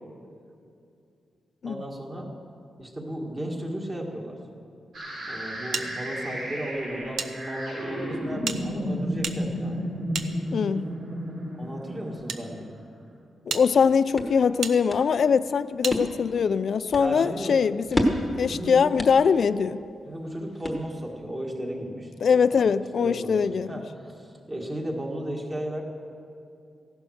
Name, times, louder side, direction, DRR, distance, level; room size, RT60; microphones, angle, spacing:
voice 1, 1.6-2.3 2.8-4.4 5.3-9.9 11.6-12.7 17.0-17.6 18.5-19.0 20.0-22.7 23.0-25.8, right 1 dB, 20° right, 0 dB, 1.8 m, -35 dB
sound 1, 4.9-12.8, equal, 55° right, 4.4 m, -33 dB
sound 2, 5.7-7.3 7.6-7.7 8.4-10.9 11.7-12.4 13.0-13.1 13.5-13.7 14.6-14.8 15.8-16.0, right 6 dB, 75° right, 0.7 m, -34 dB
voice 2, 10.5-10.9 13.5-18.1 18.4-19.8 22.2-23.8, left 6 dB, 50° left, 15 dB, 0.4 m, -22 dB
sound 3, 13.6-21.2, equal, 10° left, 1.2 m, -33 dB
15.0 x 11.5 x 6.4 m, 2.5 s
wide cardioid pair, 165°, 0 cm